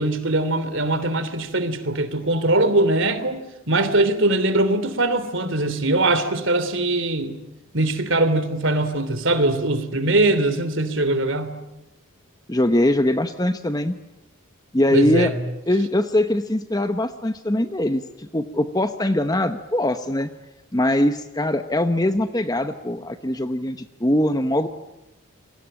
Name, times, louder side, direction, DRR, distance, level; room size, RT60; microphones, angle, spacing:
voice 1, 0.0-7.4 7.7-11.6 14.9-15.3, right 2 dB, 60° right, 12 dB, 3.2 m, -21 dB
voice 2, 12.5-13.9 14.7-15.3 15.7-20.3 20.7-24.7, left 1 dB, 15° left, 9 dB, 0.9 m, -22 dB
29.0 x 23.0 x 8.9 m, 0.93 s
head